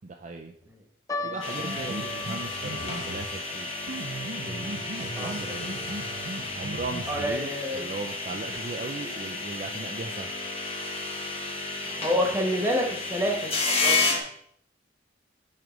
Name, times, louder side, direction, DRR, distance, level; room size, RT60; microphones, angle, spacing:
voice 1, 0.0-0.6 1.2-3.7 4.4-6.2 6.6-10.4, right 3 dB, 40° right, 3 dB, 0.4 m, -38 dB
sound 1, 1.1-7.6 7.8-7.9 8.7-9.0 9.6-9.7 10.0-10.2, left 3 dB, 15° left, 0.4 m, -41 dB
voice 2, 1.2-1.9 5.2-5.6 7.1-7.9 12.0-14.2, equal, 15° right, -1 dB, 1.3 m, -29 dB
sound 2, 1.4-14.2, left 3 dB, 35° left, 1.0 m, -32 dB
sound 3, 1.6-3.4 3.9-7.4, right 2 dB, 70° right, 0.8 m, -38 dB
7.7 x 3.3 x 5.1 m, 0.66 s
head